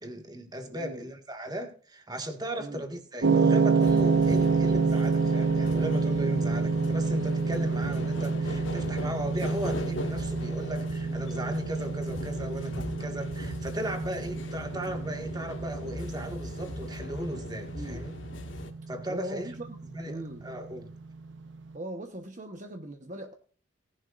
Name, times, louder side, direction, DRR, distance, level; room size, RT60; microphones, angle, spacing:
voice 1, 0.0-18.1 18.9-19.5 19.9-20.9, right 1 dB, 20° right, 1.9 m, -36 dB
voice 2, 0.7-1.1 2.6-2.9 17.7-18.1 19.1-19.8 20.1-20.5 21.7-23.3, right 1 dB, 40° right, 1.1 m, -39 dB
sound 1, 3.2-21.5, right 4 dB, 70° right, 1.0 m, -28 dB
sound 2, 3.8-18.7, left 1 dB, 70° left, 1.9 m, -39 dB
18.5 x 11.0 x 2.6 m
head